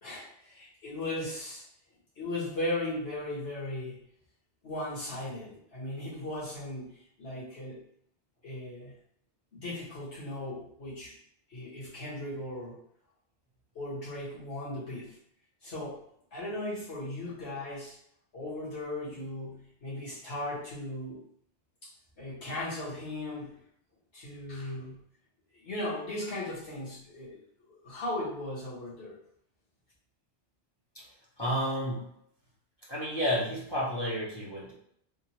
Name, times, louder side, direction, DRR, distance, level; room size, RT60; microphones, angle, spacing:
voice 1, 0.0-1.7 2.2-4.0 4.6-7.8 8.4-9.0 9.5-11.2 11.5-12.8 13.8-15.2 15.6-16.0 16.3-18.0 18.3-21.2 21.8-23.6 24.1-25.0 25.5-29.2, left 1 dB, 65° left, -7 dB, 1.7 m, -37 dB
voice 2, 31.4-32.1 32.9-34.7, equal, 25° left, -6 dB, 0.7 m, -31 dB
3.5 x 2.4 x 2.9 m, 0.70 s
omnidirectional pair, 1.2 m